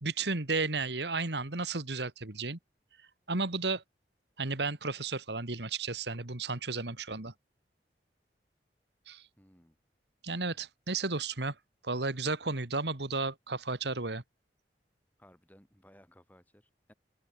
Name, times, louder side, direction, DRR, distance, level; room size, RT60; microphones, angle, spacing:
voice 1, 0.0-2.6 3.3-3.8 4.4-7.3 9.1-9.2 10.2-11.5 11.8-14.2, right 3 dB, 75° right, 2.3 m, -33 dB
voice 2, 9.4-9.8 15.2-16.9, equal, 10° left, 7.5 m, -60 dB
head